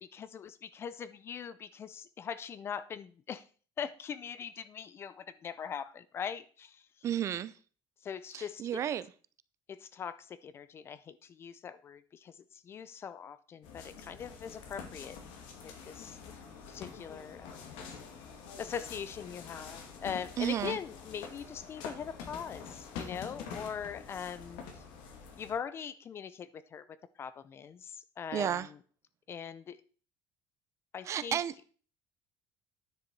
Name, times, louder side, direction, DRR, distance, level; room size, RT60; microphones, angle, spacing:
voice 1, 0.0-3.4 3.8-6.8 8.0-8.7 9.7-15.2 15.6-16.2 16.7-17.7 18.6-24.8 25.4-26.9 27.2-28.6 29.3-29.8 30.9-31.4, left 7 dB, 30° left, 0.5 m, -41 dB
voice 2, 7.0-7.5 8.3-9.1 20.4-20.8 28.3-28.7 31.0-31.5, right 10 dB, 35° right, 0.4 m, -32 dB
sound 1, 13.6-25.5, left 6 dB, 80° left, 2.1 m, -46 dB
10.0 x 6.5 x 4.7 m
cardioid pair, 165°, 9 cm